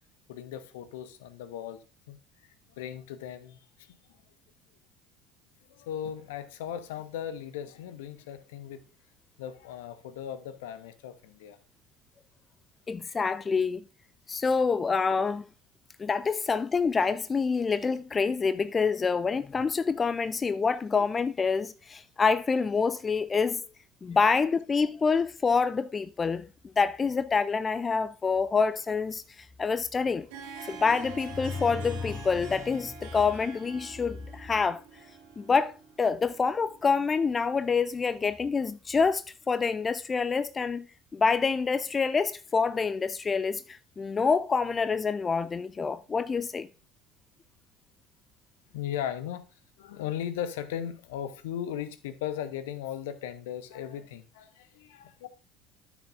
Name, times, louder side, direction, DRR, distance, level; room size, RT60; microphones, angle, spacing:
voice 1, 0.3-2.2 2.7-4.0 5.7-8.8 9.4-11.6 48.7-55.3, left 10 dB, 65° left, 0.7 m, -37 dB
voice 2, 12.9-13.8 14.3-15.4 16.0-23.6 24.0-26.5 26.8-30.3 30.7-34.8 35.4-40.9 41.1-46.7, left 5 dB, 25° left, 0.3 m, -27 dB
Harp, 30.0-37.8, right 6 dB, 65° right, 1.8 m, -46 dB
13.0 x 6.2 x 2.6 m
figure-of-eight pair, 60°, 0 cm